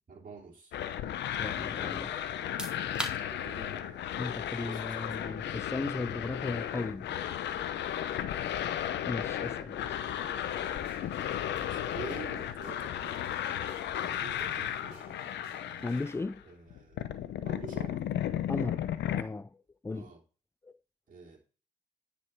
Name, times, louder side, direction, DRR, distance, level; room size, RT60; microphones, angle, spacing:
voice 1, 0.1-0.7 3.3-4.2 4.5-5.4 6.7-6.8 7.2-8.0 9.7-9.9 11.5-13.2 13.9-15.2 16.4-17.1 17.4-18.0 19.9-20.2 21.1-21.4, right 4 dB, 45° right, 3.1 m, -48 dB
sound 1, 0.7-16.4 16.7-19.2, left 10 dB, 70° left, 0.7 m, -34 dB
voice 2, 1.4-2.2 4.2-7.3 9.1-10.0 15.8-16.4 18.5-18.8 19.1-20.1 20.6-20.7, left 3 dB, 15° left, 0.3 m, -36 dB
sound 2, 2.3-15.0, right 1 dB, 5° right, 2.2 m, -49 dB
sound 3, 10.5-16.1, right 4 dB, 90° right, 2.1 m, -57 dB
9.6 x 5.2 x 4.4 m
hypercardioid pair, 45°, 19 cm